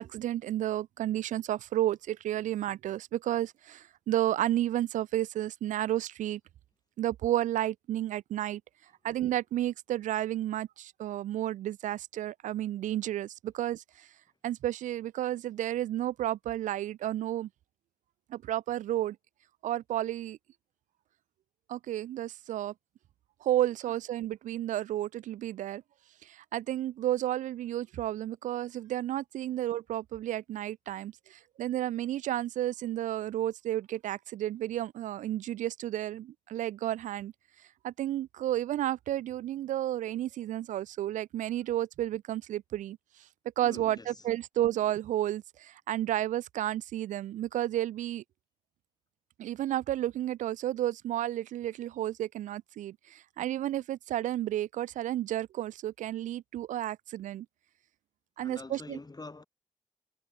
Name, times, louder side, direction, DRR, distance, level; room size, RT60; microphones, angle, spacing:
voice 1, 0.0-6.4 7.0-8.6 9.0-14.1 14.4-17.5 18.3-19.2 19.6-20.4 21.7-22.7 23.4-25.8 26.2-37.3 37.8-43.0 43.6-48.2 49.4-57.5 58.4-59.0, right 13 dB, 85° right, 0.4 m, -32 dB
voice 2, 43.6-44.2 58.4-59.4, left 3 dB, 30° left, 6.9 m, -45 dB
supercardioid pair, 45°, 13 cm